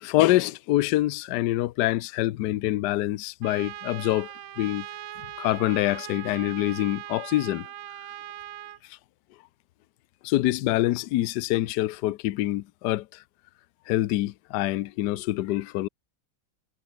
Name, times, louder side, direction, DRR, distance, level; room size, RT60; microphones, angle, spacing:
voice 1, 0.0-4.3 4.6-4.9 5.4-7.7 10.2-13.2 13.9-15.9, left 16 dB, 70° left, 1.1 m, -25 dB
Trumpet, 3.4-8.8, right 11 dB, 75° right, 1.8 m, -40 dB
omnidirectional pair, 2.2 m